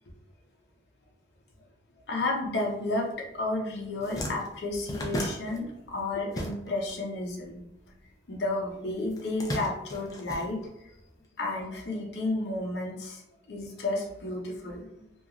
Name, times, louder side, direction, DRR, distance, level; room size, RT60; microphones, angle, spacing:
voice 1, 2.1-7.6 8.3-10.6 11.4-13.2 13.5-15.0, left 2 dB, 70° left, -1 dB, 0.6 m, -32 dB
sound 1, 3.4-3.5 3.8-7.0 7.2-8.4 9.1-11.1, equal, 20° left, 0.3 m, -36 dB
2.9 x 2.3 x 2.4 m, 0.83 s
head